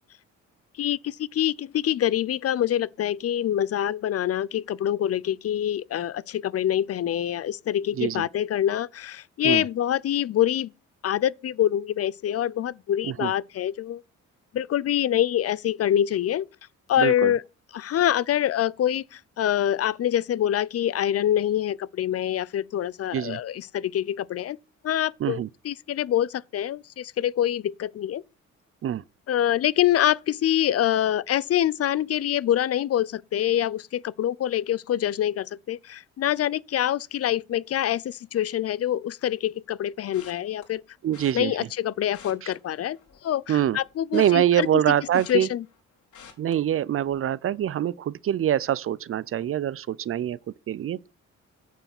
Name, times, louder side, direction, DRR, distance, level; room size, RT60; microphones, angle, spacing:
voice 1, 0.8-10.7 11.0-14.0 14.5-16.5 16.9-17.4 17.7-24.6 24.8-28.2 29.3-40.8 41.3-43.0 43.2-44.8 45.3-45.6, left 11 dB, 50° left, 0.5 m, -25 dB
voice 2, 17.0-17.3 23.1-23.4 25.2-25.5 28.8-29.0 41.0-41.6 42.4-42.5 43.5-43.8 44.1-45.5 46.4-51.1, right 11 dB, 45° right, 0.5 m, -25 dB
sound 1, 40.1-40.6 41.1-41.3 42.0-43.3 43.6-45.8 46.1-46.5 47.0-47.3 47.6-47.7, left 7 dB, 75° left, 4.6 m, -49 dB
9.1 x 6.9 x 6.0 m
cardioid pair, 90°, 30 cm